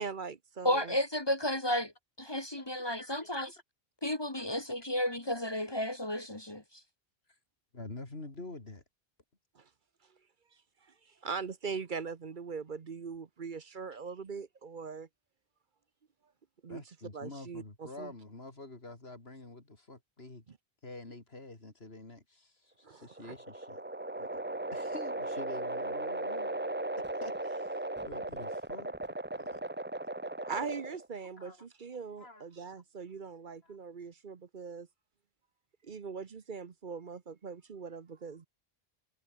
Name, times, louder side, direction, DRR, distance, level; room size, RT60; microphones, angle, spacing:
voice 1, 0.0-0.9 9.5-9.7 11.2-15.1 16.6-16.8 17.1-18.1 20.5-20.6 22.8-23.3 30.5-34.9 35.8-38.5, right 5 dB, 55° right, 1.1 m, -41 dB
voice 2, 0.6-1.9 2.2-3.5 4.0-6.8, left 1 dB, 25° left, 1.6 m, -32 dB
voice 3, 3.0-3.5 4.4-4.6 7.7-8.8 16.7-20.4 20.8-23.8 24.2-24.3 24.7-26.6 27.2-28.9 29.4-29.6 31.4-31.7 32.2-32.4 33.6-33.8, left 2 dB, 80° left, 3.9 m, -47 dB
sound 1, 22.9-31.1, right 2 dB, 10° right, 0.7 m, -37 dB
omnidirectional pair, 1.0 m